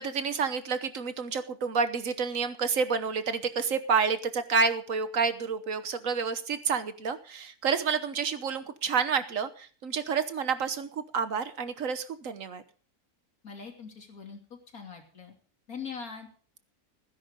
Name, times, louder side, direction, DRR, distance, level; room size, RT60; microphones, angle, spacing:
voice 1, 0.0-12.6, right 5 dB, 65° right, 12 dB, 1.4 m, -29 dB
voice 2, 13.4-15.3 15.7-16.3, left 6 dB, 70° left, 3 dB, 3.3 m, -42 dB
16.5 x 10.5 x 5.1 m, 0.42 s
omnidirectional pair, 1.6 m